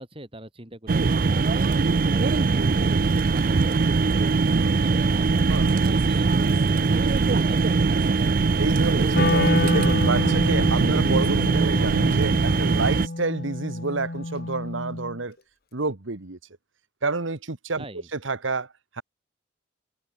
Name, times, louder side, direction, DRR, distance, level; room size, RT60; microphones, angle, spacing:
voice 1, 0.0-4.2 4.7-5.5 5.8-8.2 17.8-18.1, right 1 dB, 25° right, 3.8 m, -41 dB
sound 1, 0.9-13.1, right 4 dB, 45° right, 0.5 m, -21 dB
voice 2, 5.5-6.0 8.6-15.4 15.7-16.4 17.0-17.9 18.1-19.0, right 3 dB, 75° right, 1.5 m, -29 dB
Wind instrument woodwind instrument, 9.1-15.2, left 2 dB, 50° left, 1.3 m, -28 dB
head